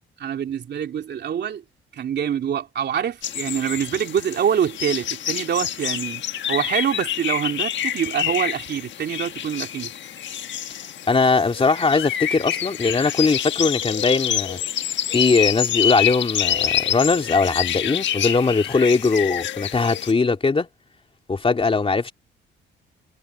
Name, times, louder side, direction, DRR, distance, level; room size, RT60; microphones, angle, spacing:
voice 1, 0.2-1.6 1.9-6.2 6.5-9.9, right 8 dB, 60° right, 3.0 m, -25 dB
sound 1, 3.2-20.1, left 10 dB, 65° left, 1.3 m, -27 dB
voice 2, 11.1-14.8 15.1-20.7 21.3-22.1, left 4 dB, 30° left, 3.2 m, -20 dB
cardioid pair, 90°, 20 cm